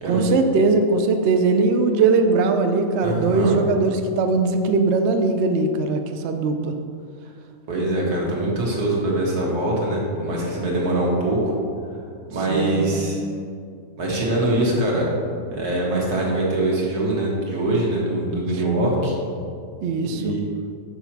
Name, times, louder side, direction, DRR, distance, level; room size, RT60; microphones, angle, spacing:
voice 1, 0.0-6.8 12.5-12.9 19.8-20.3, right 3 dB, 65° right, 6 dB, 0.7 m, -20 dB
voice 2, 3.0-3.6 7.7-11.5 12.3-13.2 14.0-15.1 15.5-19.1 20.1-20.4, right 1 dB, 85° right, -3 dB, 1.9 m, -23 dB
5.6 x 5.5 x 4.6 m, 2.3 s
omnidirectional pair, 1.6 m